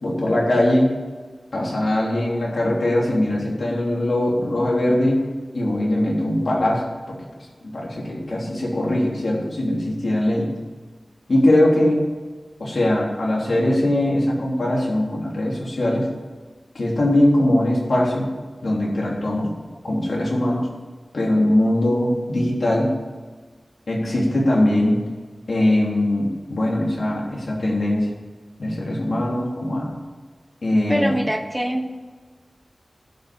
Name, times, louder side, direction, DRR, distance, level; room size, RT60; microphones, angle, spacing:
voice 1, 0.0-0.9 1.5-5.2 5.5-7.2 7.6-10.5 11.3-12.0 12.6-16.1 16.8-18.3 18.6-19.5 19.8-20.7 21.1-22.9 23.9-25.0 25.5-28.1 28.6-30.0 30.6-31.2, left 1 dB, 80° left, -3 dB, 3.3 m, -21 dB
voice 2, 30.9-31.9, equal, 5° right, 5 dB, 1.3 m, -24 dB
11.5 x 5.7 x 8.7 m, 1.4 s
wide cardioid pair, 55°, 0 cm